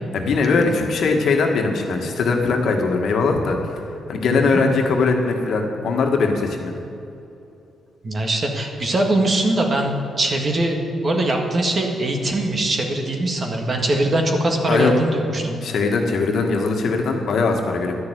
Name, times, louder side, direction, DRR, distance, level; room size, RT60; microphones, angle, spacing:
voice 1, 0.1-3.6 4.1-6.7 14.7-14.9 15.6-18.0, left 4 dB, 70° left, 2 dB, 1.7 m, -20 dB
voice 2, 8.0-15.6, right 1 dB, 35° right, 2 dB, 1.7 m, -22 dB
12.0 x 6.5 x 9.3 m, 2.8 s
cardioid pair, 115°, 0 cm